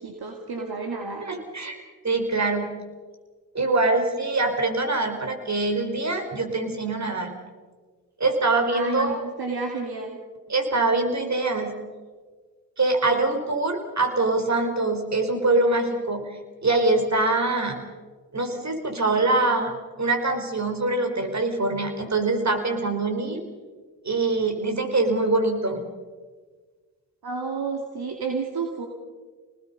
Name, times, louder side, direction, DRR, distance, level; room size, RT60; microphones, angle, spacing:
voice 1, 0.0-1.3 8.7-10.2 27.2-28.9, right 4 dB, 55° right, 2 dB, 2.6 m, -31 dB
voice 2, 1.2-1.8 2.0-2.8 3.5-7.3 8.2-9.2 10.5-11.7 12.8-17.8 18.3-23.4 24.0-25.9, right 2 dB, 35° right, 5 dB, 4.4 m, -24 dB
27.5 x 19.5 x 5.5 m, 1.4 s
hypercardioid pair, 45°, 45 cm